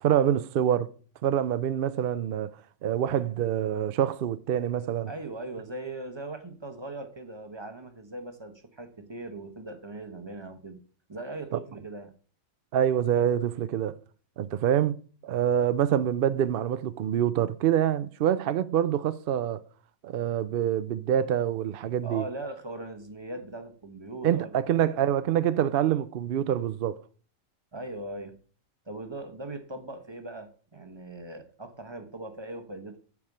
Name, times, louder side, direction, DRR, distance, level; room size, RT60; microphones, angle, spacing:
voice 1, 0.0-0.9 1.2-2.5 2.8-5.1 12.7-14.0 14.4-15.0 15.2-19.6 20.0-22.2 24.2-27.0, right 10 dB, 65° right, 0.6 m, -26 dB
voice 2, 5.1-10.8 11.1-12.1 22.0-24.6 27.7-28.3 28.9-33.0, right 2 dB, 20° right, 1.1 m, -39 dB
8.9 x 4.9 x 7.3 m
omnidirectional pair, 1.4 m